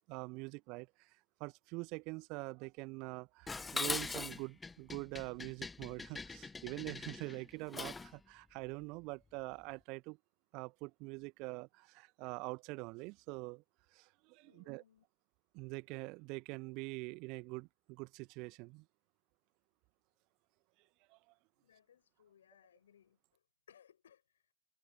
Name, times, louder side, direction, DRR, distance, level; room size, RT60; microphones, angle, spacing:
voice 1, 0.1-1.1 1.4-10.2 10.5-13.6 13.9-14.8 15.5-18.8 21.1-21.2, right 27 dB, 50° right, 1.7 m, -44 dB
Dishes pots and pans, 3.5-8.2, left 4 dB, 15° left, 1.0 m, -42 dB
voice 2, 14.4-15.0 21.6-24.5, left 9 dB, 70° left, 6.8 m, -66 dB
open air
figure-of-eight pair, 70°, 0 cm